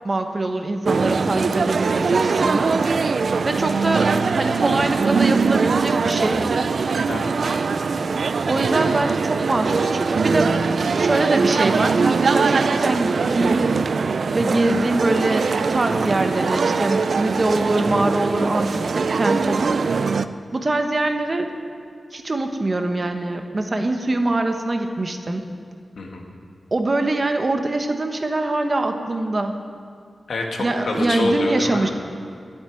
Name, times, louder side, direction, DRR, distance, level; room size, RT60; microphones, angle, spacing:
voice 1, 0.0-2.7 3.4-6.5 8.5-10.5 11.0-13.7 14.3-19.7 20.5-21.5 22.1-25.4 26.7-29.5 30.6-31.9, right 2 dB, 35° right, 5 dB, 1.0 m, -23 dB
sound 1, 0.9-20.3, right 4 dB, 65° right, 0.4 m, -21 dB
voice 2, 7.1-7.7 26.0-26.3 30.3-31.9, left 2 dB, 85° left, 1 dB, 1.8 m, -26 dB
11.5 x 8.2 x 9.8 m, 2.3 s
wide cardioid pair, 125°, 0 cm